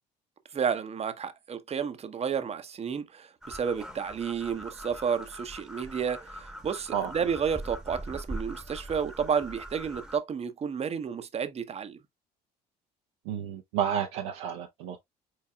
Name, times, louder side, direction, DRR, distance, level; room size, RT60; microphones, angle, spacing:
voice 1, 0.5-12.0, right 7 dB, 30° right, 0.8 m, -31 dB
sound 1, 3.4-10.2, right 1 dB, ahead, 1.1 m, -42 dB
voice 2, 13.3-15.0, right 9 dB, 65° right, 0.7 m, -31 dB
4.7 x 4.6 x 2.2 m
figure-of-eight pair, 55°, 20 cm